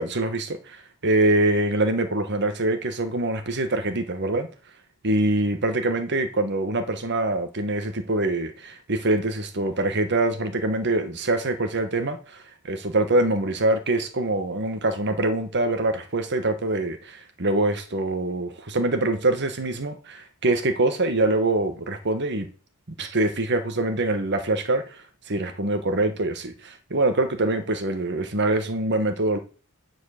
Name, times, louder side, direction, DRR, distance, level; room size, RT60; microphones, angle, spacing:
voice 1, 0.0-4.5 5.0-22.5 23.0-25.0 25.3-29.4, right 2 dB, 55° right, 1.4 m, -24 dB
10.5 x 4.8 x 6.6 m
head